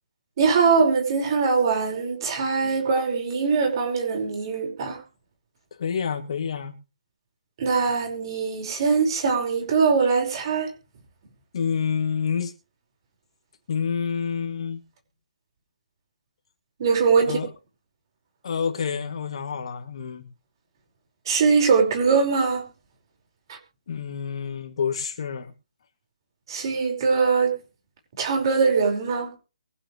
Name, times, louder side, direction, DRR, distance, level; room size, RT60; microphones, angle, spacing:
voice 1, 0.4-5.0 7.6-10.7 16.8-17.4 21.3-22.7 23.5-23.6 26.5-27.6 28.2-29.3, right 5 dB, 40° right, 5.3 m, -22 dB
voice 2, 5.8-6.7 11.5-12.5 13.7-14.8 17.3-17.5 18.4-20.3 23.9-25.5, left 6 dB, 50° left, 2.6 m, -28 dB
23.0 x 8.4 x 3.3 m
hypercardioid pair, 165°, 4 cm